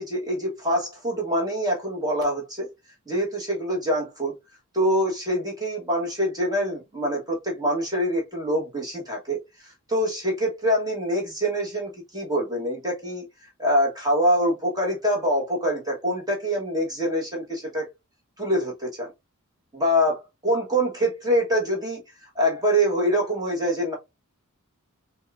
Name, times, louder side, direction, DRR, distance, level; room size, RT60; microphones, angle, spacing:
voice 1, 0.0-2.7 3.1-4.3 4.7-13.2 13.6-17.8 18.4-19.1 19.7-20.2 20.4-23.9, equal, 20° right, 1.2 m, -25 dB
5.3 x 2.3 x 2.4 m
head